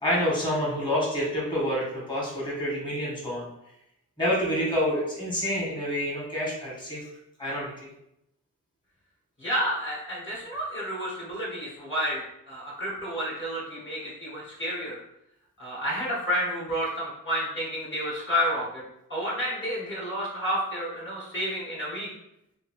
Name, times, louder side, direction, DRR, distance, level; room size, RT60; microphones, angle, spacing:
voice 1, 0.0-3.4 4.2-7.0 7.4-7.9, equal, 15° left, -6 dB, 1.2 m, -28 dB
voice 2, 9.4-15.0 15.6-18.8 19.1-22.1, equal, 35° left, -6 dB, 1.1 m, -30 dB
2.7 x 2.6 x 2.9 m, 0.81 s
wide cardioid pair, 90°, 32 cm